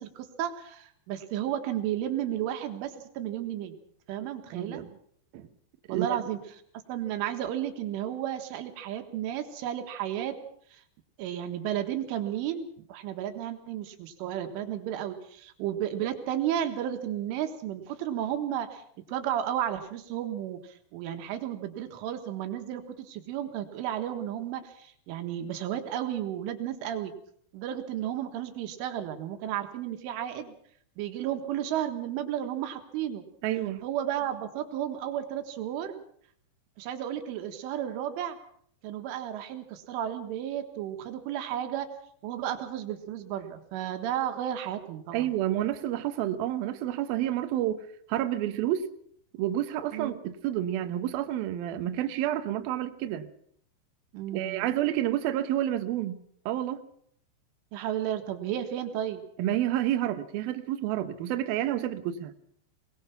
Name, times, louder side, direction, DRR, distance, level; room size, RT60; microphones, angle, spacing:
voice 1, 0.0-3.8 4.1-4.8 5.9-6.4 6.9-10.4 10.7-10.8 11.2-20.6 20.9-27.1 27.5-30.5 31.0-33.3 33.8-36.0 36.8-38.4 38.8-41.9 42.2-45.3 49.9-50.2 54.1-54.7 57.7-59.2, right 11 dB, 90° right, 7 dB, 4.1 m, -33 dB
voice 2, 4.5-4.9 5.3-5.5 5.9-6.2 33.4-33.8 45.1-47.8 48.1-48.9 49.3-53.3 54.3-56.2 56.5-56.8 59.4-62.3, right 12 dB, 70° right, 8 dB, 2.4 m, -29 dB
22.0 x 20.0 x 5.9 m, 0.65 s
omnidirectional pair, 5.5 m